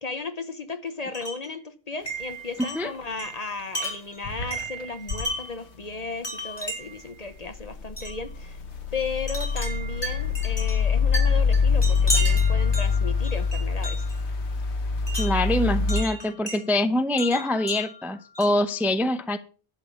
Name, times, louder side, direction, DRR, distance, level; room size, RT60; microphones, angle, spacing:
voice 1, 0.0-8.6 8.9-14.0, left 4 dB, 40° left, 1.0 m, -35 dB
Wind chime, 1.1-1.5 2.1-5.6 6.2-7.1 8.0-8.2 9.3-14.2 15.1-16.6 17.2-18.7, right 1 dB, 20° left, 4.2 m, -34 dB
sound 1, 2.1-2.3 2.6-3.3 3.6-3.7 4.2-5.2 7.4-16.0, left 5 dB, 75° left, 1.4 m, -24 dB
voice 2, 15.2-19.4, left 1 dB, ahead, 0.6 m, -24 dB
11.5 x 5.1 x 7.1 m
omnidirectional pair, 1.1 m